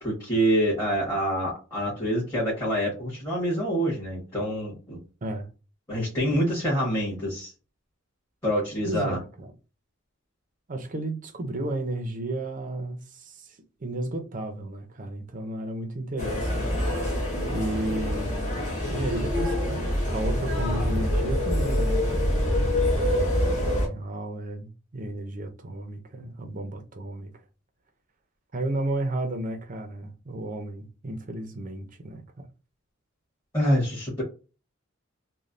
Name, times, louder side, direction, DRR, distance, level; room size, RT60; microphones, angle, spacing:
voice 1, 0.0-5.0 5.9-7.5 8.4-9.2 33.5-34.2, equal, 15° left, 1.4 m, -26 dB
voice 2, 8.8-9.5 10.7-17.2 17.5-22.4 23.5-27.4 28.5-32.5, right 1 dB, 40° right, 0.6 m, -33 dB
sound 1, 16.2-23.9, left 1 dB, 40° left, 1.3 m, -25 dB
3.2 x 2.1 x 2.5 m
head